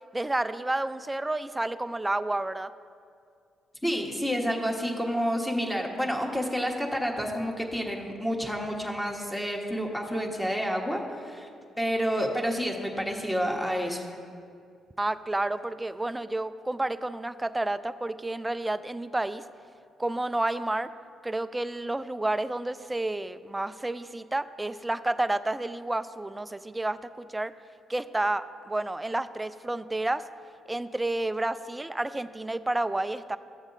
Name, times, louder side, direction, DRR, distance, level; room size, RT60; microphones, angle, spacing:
voice 1, 0.1-2.7 15.0-19.4 20.0-20.9 21.2-27.5 27.9-30.3 30.7-33.4, right 2 dB, 15° right, 13 dB, 0.4 m, -30 dB
voice 2, 3.8-11.5 11.8-14.0, equal, 5° left, 1 dB, 1.3 m, -29 dB
12.5 x 7.2 x 4.0 m, 2.4 s
cardioid pair, 90°, 0 cm